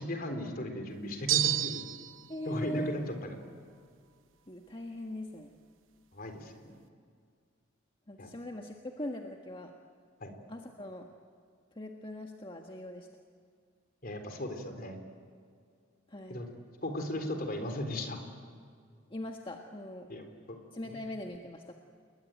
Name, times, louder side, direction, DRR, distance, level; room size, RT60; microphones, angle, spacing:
voice 1, 0.0-1.8 2.5-3.4 6.1-6.6 8.2-8.3 10.2-10.3 14.0-15.0 16.3-16.5 16.8-18.2 20.1-20.2 20.9-21.0, left 1 dB, 50° left, 5 dB, 3.8 m, -36 dB
sound 1, 1.3-2.2, right 13 dB, 80° right, 0.9 m, -29 dB
voice 2, 2.3-2.9 4.5-5.5 8.1-9.7 10.5-11.1 11.7-13.1 16.1-16.4 19.1-20.1 20.7-21.7, left 1 dB, 25° left, 2 dB, 1.5 m, -41 dB
30.0 x 21.5 x 9.1 m, 2.2 s
head